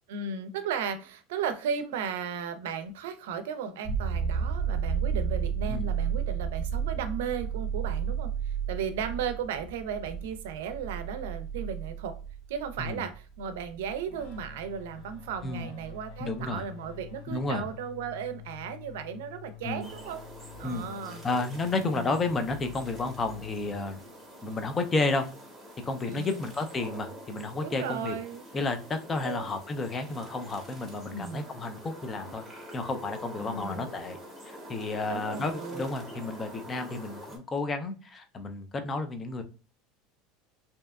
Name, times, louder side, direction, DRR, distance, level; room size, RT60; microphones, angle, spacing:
voice 1, 0.1-12.1 12.5-20.2 20.6-21.2 21.7-22.2 26.0-26.4 27.6-28.5 29.2-29.5 31.1-31.5 33.4-33.9 35.1-35.9, right 7 dB, 90° right, 10 dB, 0.4 m, -35 dB
sound 1, 3.8-17.4 20.1-20.2, right 7 dB, 40° right, 0.7 m, -33 dB
sound 2, 14.1-24.3, left 8 dB, 65° left, 0.7 m, -48 dB
voice 2, 16.2-16.6 17.3-17.6 19.6-19.9 20.6-20.8 21.2-24.0 24.4-25.3 25.9-28.2 28.5-32.4 32.7-34.2 34.7-39.4, left 3 dB, 20° left, 7 dB, 0.4 m, -31 dB
sound 3, 19.8-37.4, equal, 5° right, 0.7 m, -46 dB
2.7 x 2.2 x 2.2 m, 0.35 s
supercardioid pair, 145°, 0 cm